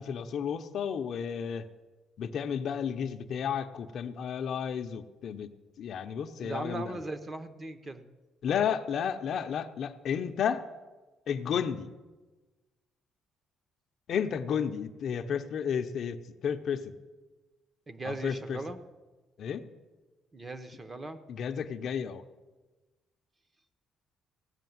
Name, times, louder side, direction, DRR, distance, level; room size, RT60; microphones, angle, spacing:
voice 1, 0.0-1.7 2.2-5.5 5.8-7.0 8.4-10.6 11.3-11.9 14.1-16.9 18.0-18.6 19.4-19.7 21.3-22.2, left 7 dB, 50° left, 8 dB, 0.6 m, -32 dB
voice 2, 6.4-8.0 17.9-18.8 20.3-21.2, right 2 dB, 20° right, 10 dB, 0.7 m, -38 dB
16.5 x 6.4 x 9.3 m, 1.2 s
cardioid pair, 170°, 0 cm